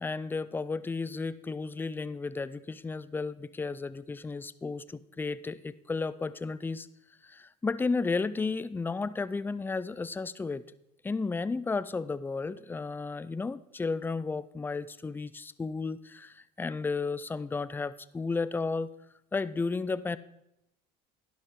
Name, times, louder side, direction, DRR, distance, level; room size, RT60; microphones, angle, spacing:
voice 1, 0.0-6.9 7.2-10.6 11.0-18.9 19.3-20.2, left 4 dB, 10° left, 16 dB, 0.4 m, -33 dB
11.5 x 10.5 x 3.6 m, 0.85 s
supercardioid pair, 105°, 20 cm